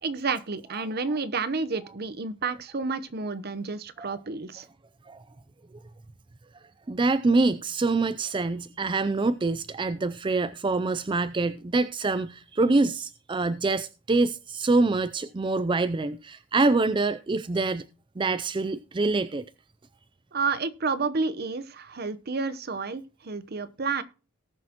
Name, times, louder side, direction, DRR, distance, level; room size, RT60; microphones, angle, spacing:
voice 1, 0.0-4.7 20.3-24.0, right 4 dB, 50° right, 0.9 m, -30 dB
voice 2, 6.9-17.9 18.2-19.4, right 3 dB, 25° right, 0.4 m, -25 dB
19.0 x 6.4 x 2.9 m
head